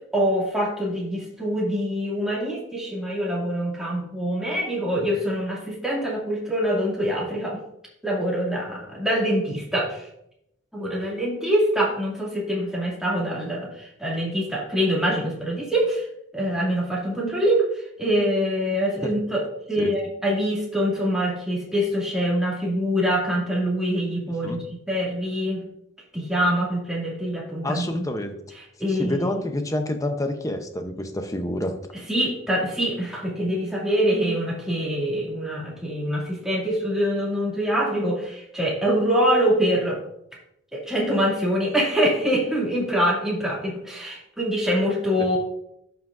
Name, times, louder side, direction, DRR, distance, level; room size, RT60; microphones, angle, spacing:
voice 1, 0.1-7.6 8.0-10.1 10.7-16.1 16.3-25.6 26.1-28.0 28.8-29.2 32.1-40.0 40.7-45.4, equal, 5° right, -5 dB, 2.3 m, -24 dB
voice 2, 24.3-24.6 27.6-28.3 28.8-31.7, left 1 dB, 15° left, 6 dB, 0.7 m, -28 dB
12.0 x 5.9 x 2.6 m, 0.78 s
head